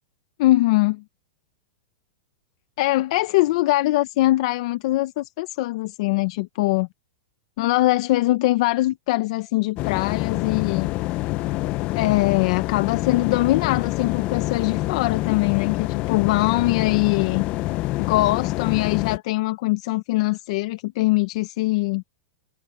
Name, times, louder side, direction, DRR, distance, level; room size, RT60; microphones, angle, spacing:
voice 1, 0.4-1.0 2.8-6.9 7.6-10.9 11.9-17.5 18.0-22.0, left 18 dB, 50° left, 0.9 m, -22 dB
sound 1, 9.8-19.2, left 18 dB, 30° left, 0.6 m, -26 dB
supercardioid pair, 155°, 4 cm